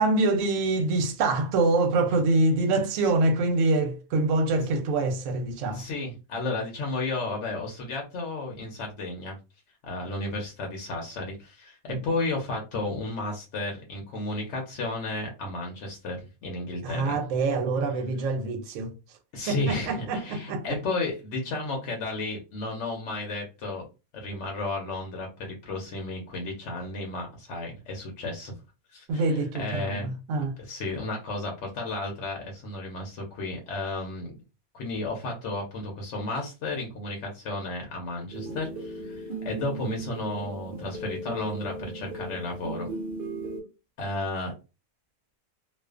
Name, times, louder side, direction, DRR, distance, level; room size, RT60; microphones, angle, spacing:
voice 1, 0.0-5.8 11.9-12.0 16.8-18.9 19.5-20.6 29.1-30.5, right 2 dB, 70° right, 0.9 m, -25 dB
voice 2, 5.7-9.3 9.8-17.2 19.3-23.8 24.1-28.5 28.9-30.1 30.6-34.4 34.7-42.9 44.0-44.5, left 2 dB, 65° left, 0.9 m, -33 dB
sound 1, 38.3-43.6, right 2 dB, 55° right, 0.6 m, -37 dB
2.4 x 2.3 x 2.3 m
omnidirectional pair, 1.5 m